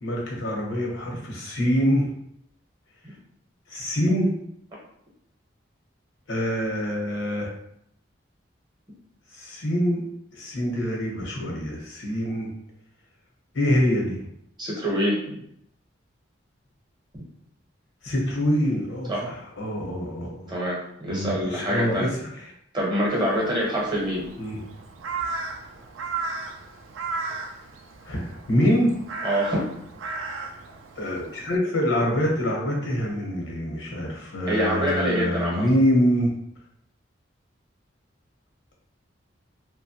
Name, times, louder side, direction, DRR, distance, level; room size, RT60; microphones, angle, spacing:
voice 1, 0.0-2.1 3.7-4.3 6.3-7.5 9.3-10.0 10.3-12.5 13.5-14.2 18.0-20.6 21.1-22.3 24.4-24.6 28.0-29.0 31.0-36.3, equal, 80° left, -1 dB, 0.9 m, -25 dB
voice 2, 14.6-15.4 19.1-19.3 20.5-22.1 22.7-24.3 29.2-29.6 34.5-35.6, equal, 20° right, -4 dB, 0.7 m, -25 dB
Crow, 23.1-31.6, right 4 dB, 85° right, 0.3 m, -35 dB
2.9 x 2.1 x 2.8 m, 0.71 s
head